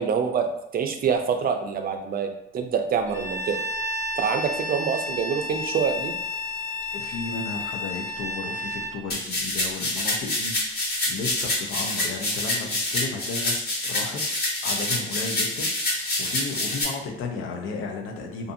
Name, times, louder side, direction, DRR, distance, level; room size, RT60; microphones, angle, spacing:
voice 1, 0.0-2.3 2.5-3.6 4.2-6.1, right 6 dB, 50° right, 5 dB, 0.4 m, -26 dB
Bowed string instrument, 3.1-9.0, left 2 dB, 10° left, 0.8 m, -31 dB
voice 2, 6.9-14.2 14.6-18.5, left 4 dB, 85° left, 2 dB, 0.6 m, -34 dB
sound 1, 9.1-16.8, left 1 dB, 55° left, 1.1 m, -27 dB
2.5 x 2.5 x 2.5 m, 0.82 s
cardioid pair, 90°, 20 cm